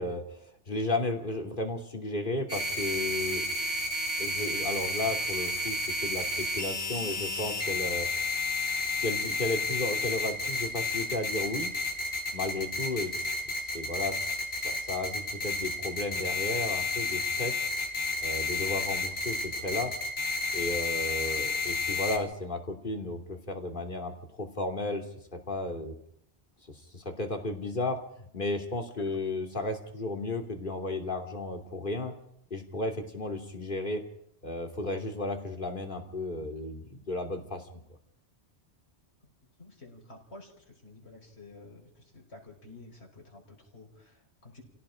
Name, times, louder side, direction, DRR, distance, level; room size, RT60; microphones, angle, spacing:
voice 1, 0.0-3.5 4.2-8.1 9.0-11.7 12.3-13.1 13.7-14.2 14.6-17.6 18.2-19.9 20.5-24.1 24.4-25.0 25.3-25.9 26.9-28.0 28.3-32.1 32.5-34.0 34.4-37.6, left 2 dB, 45° left, 4 dB, 2.9 m, -34 dB
sound 1, 2.5-22.2, left 2 dB, 90° left, 4.1 m, -31 dB
voice 2, 39.6-44.6, left 2 dB, 70° left, 0 dB, 5.6 m, -51 dB
29.5 x 17.5 x 5.0 m, 0.70 s
omnidirectional pair, 1.2 m